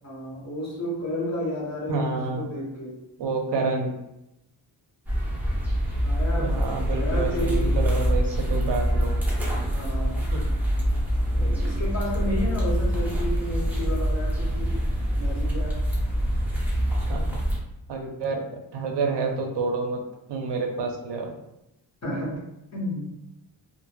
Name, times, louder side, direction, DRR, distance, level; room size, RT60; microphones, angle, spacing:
voice 1, 0.0-3.0 6.0-7.8 9.7-10.3 11.3-14.8 15.2-15.8 22.0-22.4 22.7-23.0, left 1 dB, 40° left, -4 dB, 1.0 m, -32 dB
voice 2, 1.9-2.5 3.2-4.0 6.3-9.2 10.3-10.5 17.1-17.4 17.9-20.0 20.3-21.3, right 3 dB, 70° right, 3 dB, 0.6 m, -29 dB
sound 1, 5.1-17.6, equal, 5° right, 0.6 m, -25 dB
2.1 x 2.1 x 3.1 m, 0.88 s
wide cardioid pair, 105°, 44 cm